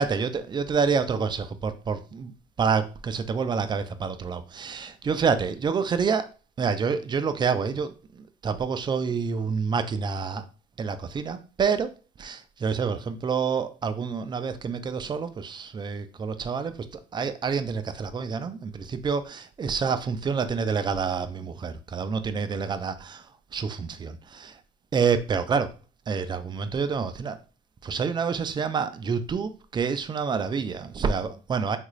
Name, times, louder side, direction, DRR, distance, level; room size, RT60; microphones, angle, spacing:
voice 1, 0.0-6.3 6.6-10.4 10.8-11.9 12.2-23.2 23.5-24.5 24.9-25.7 26.1-27.4 27.8-31.8, right 5 dB, 25° right, 0.4 m, -28 dB
3.6 x 2.5 x 3.0 m
cardioid pair, 110°, 17 cm